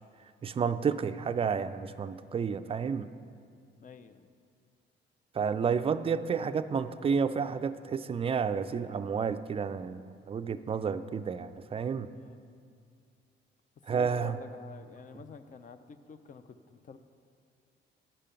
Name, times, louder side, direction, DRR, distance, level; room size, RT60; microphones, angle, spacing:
voice 1, 0.4-3.1 5.3-12.1 13.9-14.4, right 6 dB, 30° right, 12 dB, 0.3 m, -31 dB
voice 2, 3.8-4.3 12.1-12.4 13.9-17.0, left 5 dB, 40° left, 11 dB, 0.5 m, -49 dB
10.0 x 5.1 x 5.7 m, 2.3 s
cardioid pair, 90°, 20 cm